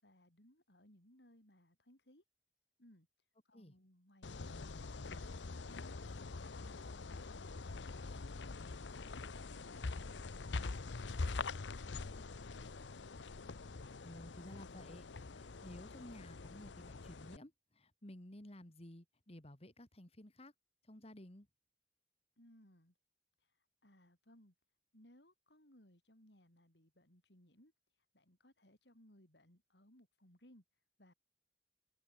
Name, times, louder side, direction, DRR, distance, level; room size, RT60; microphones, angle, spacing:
voice 1, 0.0-2.2 2.8-3.1 3.4-4.5 4.9-6.8 7.3-12.7 22.4-22.9 23.4-24.5 24.9-27.7 28.1-30.6 31.0-31.1, left 1 dB, 70° left, 7.8 m, -65 dB
sound 1, 4.2-17.4, left 3 dB, 85° left, 0.8 m, -44 dB
voice 2, 14.0-15.1 15.3-20.5 20.9-21.5, left 1 dB, 35° left, 2.6 m, -54 dB
head